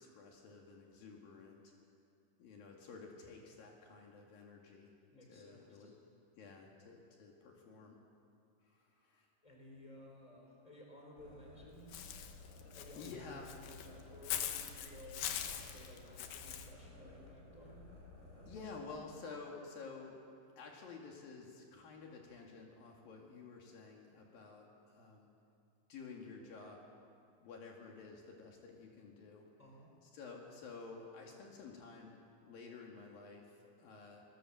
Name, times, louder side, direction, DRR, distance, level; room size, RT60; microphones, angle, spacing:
voice 1, 0.0-1.6 2.4-4.9 5.3-5.9 6.4-8.0 8.6-9.3 13.0-13.5 18.5-20.2 20.6-25.3 25.9-26.8 27.4-29.4 30.0-34.2, left 4 dB, 70° left, 0 dB, 3.8 m, -52 dB
voice 2, 5.1-5.8 9.4-12.1 12.7-15.3 15.6-17.9 29.6-29.9, left 1 dB, 10° left, 0 dB, 4.7 m, -56 dB
sound 1, 11.2-18.7, left 1 dB, 35° left, 8.2 m, -56 dB
Walk footsteps / Bird, 11.9-16.7, left 10 dB, 85° left, 3.2 m, -42 dB
26.0 x 19.5 x 7.6 m, 2.5 s
omnidirectional pair, 4.3 m